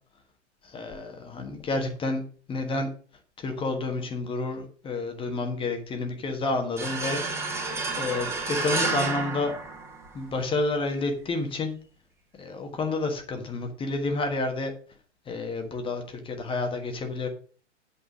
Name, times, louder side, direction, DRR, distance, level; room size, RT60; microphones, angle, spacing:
voice 1, 0.6-2.2 2.5-2.9 3.4-7.2 7.5-7.6 8.0-9.5 10.1-11.7 12.4-14.7 15.3-17.3, left 3 dB, 15° left, 5 dB, 1.4 m, -29 dB
sound 1, 6.8-10.3, right 3 dB, 10° right, 1.6 m, -30 dB
8.5 x 5.4 x 6.3 m, 0.40 s
figure-of-eight pair, 120°, 35 cm